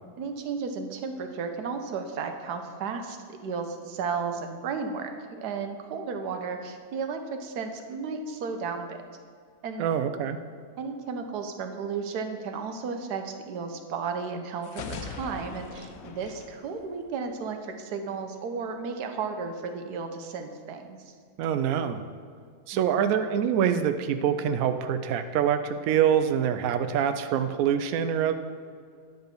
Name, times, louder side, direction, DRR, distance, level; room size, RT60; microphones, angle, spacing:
voice 1, 0.2-9.0 9.6-9.9 10.8-21.1 22.7-23.1, right 5 dB, 90° right, 6 dB, 1.3 m, -34 dB
voice 2, 9.8-10.4 21.4-22.0 22.7-28.3, right 8 dB, 70° right, 9 dB, 0.9 m, -25 dB
sound 1, 14.6-17.5, left 5 dB, 75° left, 1.2 m, -41 dB
10.0 x 4.0 x 6.7 m, 2.1 s
omnidirectional pair, 1.7 m